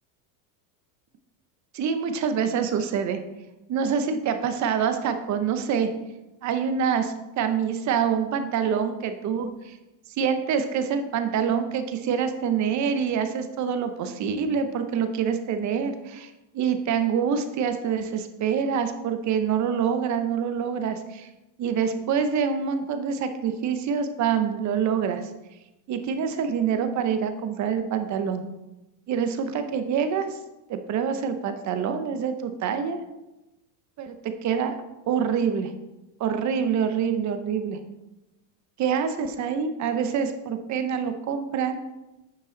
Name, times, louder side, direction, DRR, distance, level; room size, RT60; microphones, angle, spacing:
voice 1, 1.7-3.2 3.7-5.9 6.4-9.8 10.2-21.3 21.6-25.3 25.9-28.4 29.1-30.4 30.7-33.0 34.0-34.1 34.4-34.8 35.1-35.7 36.2-37.8 38.8-41.8, right 7 dB, 35° right, 8 dB, 0.8 m, -26 dB
9.4 x 5.3 x 3.9 m, 0.98 s
supercardioid pair, 135°, 48 cm